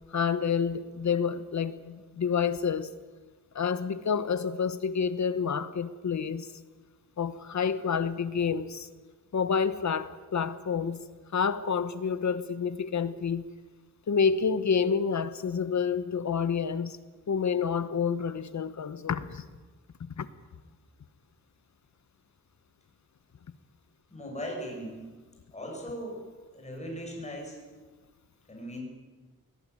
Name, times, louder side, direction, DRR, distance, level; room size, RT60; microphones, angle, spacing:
voice 1, 0.1-2.9 3.5-6.5 7.2-8.9 9.3-11.0 11.3-13.4 14.1-17.0 17.3-19.4 20.2-20.3, left 6 dB, 60° left, 13 dB, 1.1 m, -28 dB
voice 2, 24.1-25.0 25.5-26.2 26.5-27.6 28.5-28.8, equal, 20° left, 0 dB, 7.2 m, -38 dB
22.0 x 18.5 x 9.6 m, 1.3 s
wide cardioid pair, 170°, 33 cm